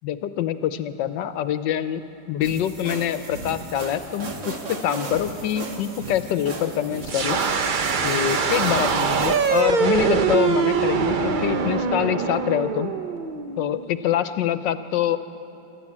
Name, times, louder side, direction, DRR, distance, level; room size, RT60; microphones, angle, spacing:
voice 1, 0.0-2.0 2.3-7.4 8.0-12.9 13.6-15.2, left 10 dB, 90° left, 12 dB, 1.4 m, -25 dB
sound 1, 2.4-9.6, right 3 dB, 80° right, 2.6 m, -35 dB
sound 2, 7.0-13.8, right 5 dB, 55° right, 0.5 m, -23 dB
26.5 x 12.5 x 8.6 m, 2.9 s
omnidirectional pair, 1.9 m